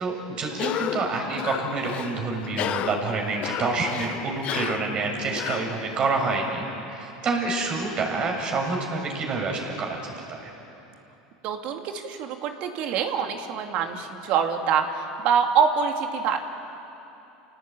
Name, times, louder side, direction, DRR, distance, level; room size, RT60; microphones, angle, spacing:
voice 1, 0.0-10.5, right 3 dB, 40° right, 1 dB, 6.8 m, -28 dB
Cough, 0.5-6.3, left 12 dB, 50° left, 0.6 m, -33 dB
voice 2, 11.4-16.4, right 6 dB, 55° right, 4 dB, 2.7 m, -25 dB
29.5 x 18.0 x 9.1 m, 3.0 s
hypercardioid pair, 95°, 3 cm